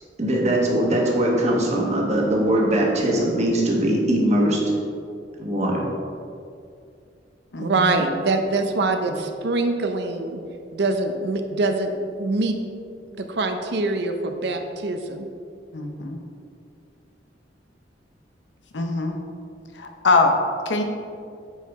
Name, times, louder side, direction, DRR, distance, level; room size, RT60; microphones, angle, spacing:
voice 1, 0.2-4.6 5.4-5.8, right 1 dB, 40° right, -2 dB, 1.3 m, -21 dB
voice 2, 7.6-10.4 10.7-12.6 13.1-15.3, right 3 dB, 70° right, 6 dB, 0.6 m, -24 dB
voice 3, 15.7-16.2 18.7-19.2 19.8-20.3 20.7-20.8, left 3 dB, 90° left, 4 dB, 0.8 m, -22 dB
8.9 x 4.6 x 3.6 m, 2.4 s
head